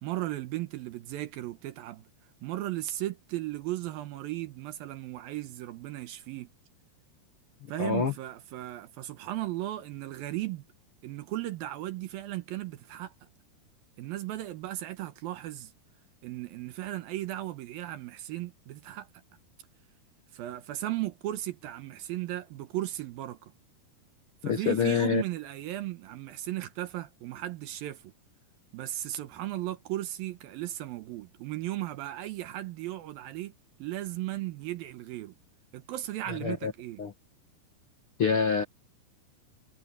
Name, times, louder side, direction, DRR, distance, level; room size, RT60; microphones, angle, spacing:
voice 1, 0.0-2.0 2.4-6.5 7.7-10.6 11.0-13.1 14.0-15.7 16.2-19.1 20.3-23.4 24.4-28.1 28.7-33.5 33.8-35.3 35.7-37.0, right 15 dB, 75° right, 2.5 m, -36 dB
voice 2, 7.8-8.1 24.4-25.2 36.3-36.7 37.0-37.1 38.2-38.6, left 6 dB, 65° left, 1.3 m, -26 dB
omnidirectional pair, 4.7 m